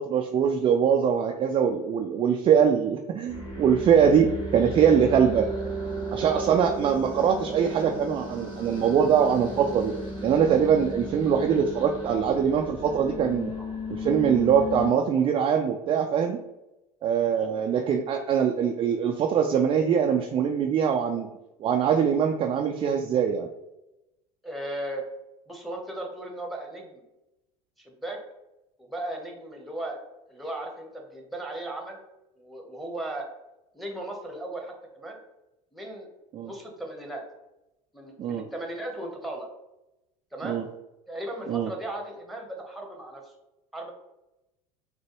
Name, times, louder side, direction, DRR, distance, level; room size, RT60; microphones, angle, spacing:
voice 1, 0.0-5.5 6.1-9.9 10.2-13.5 13.9-16.4 17.0-21.3 21.6-23.5 36.3-36.5 38.2-38.4 40.4-40.6 41.5-41.7, right 7 dB, 30° right, 4 dB, 0.4 m, -23 dB
sound 1, 3.3-14.9, equal, 25° left, 1.5 m, -35 dB
voice 2, 24.4-25.0 25.5-27.0 27.8-28.2 28.8-30.0 30.3-32.0 32.4-33.3 33.7-35.2 35.7-36.1 36.4-37.2 37.9-39.5 40.3-40.6 41.1-43.3 43.7-43.9, right 1 dB, ahead, 1 dB, 1.0 m, -36 dB
6.3 x 2.2 x 3.0 m, 0.94 s
figure-of-eight pair, 70°, 19 cm